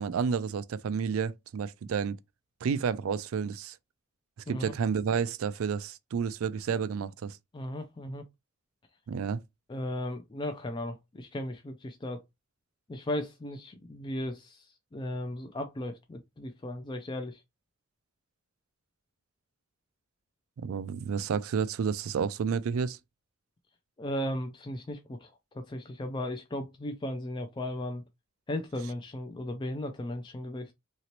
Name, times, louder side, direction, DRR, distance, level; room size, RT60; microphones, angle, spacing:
voice 1, 0.0-2.2 2.6-3.8 4.5-7.4 9.1-9.4 20.6-23.0, right 6 dB, 90° right, 0.4 m, -30 dB
voice 2, 7.5-8.2 9.7-12.2 12.9-17.4 24.0-28.0 28.5-30.7, left 1 dB, 20° left, 0.3 m, -36 dB
2.9 x 2.9 x 2.9 m
head